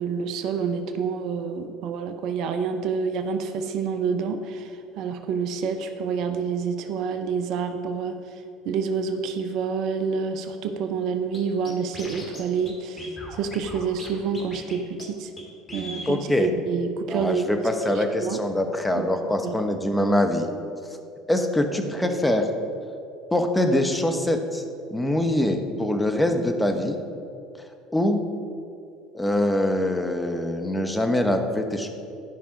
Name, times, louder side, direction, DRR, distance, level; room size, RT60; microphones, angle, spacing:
voice 1, 0.0-4.6 5.0-8.2 8.7-13.0 13.4-15.3 15.7-17.4 18.2-18.4 19.0-19.1 19.4-19.5, right 6 dB, 60° right, 7 dB, 0.6 m, -28 dB
Scratching (performance technique), 11.3-11.4 11.7-12.4 12.7-12.8 13.0-14.1 14.3-14.7 15.0-15.1 15.4-15.5 15.7-16.1, left 1 dB, 30° left, 2.4 m, -38 dB
voice 2, 16.1-16.5 17.1-20.5 21.3-22.5 23.3-24.6 24.9-27.0 27.9-28.2 29.1-31.9, left 1 dB, 10° left, 5 dB, 1.1 m, -23 dB
11.5 x 5.4 x 5.0 m, 2.5 s
hypercardioid pair, 70°, 0 cm